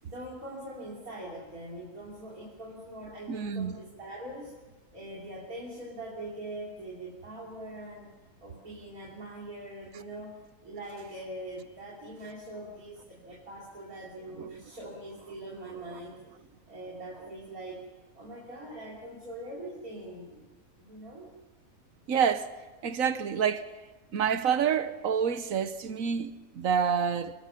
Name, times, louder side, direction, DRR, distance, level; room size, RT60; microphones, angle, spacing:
voice 1, 0.0-4.5 4.9-8.1 8.4-16.2 16.7-17.9 18.1-20.5 20.8-21.3, right 1 dB, 90° right, 4.0 m, -42 dB
voice 2, 3.3-3.8 22.1-22.5 22.8-23.6 24.1-27.3, right 7 dB, 70° right, 1.4 m, -27 dB
28.0 x 19.0 x 5.9 m
omnidirectional pair, 1.5 m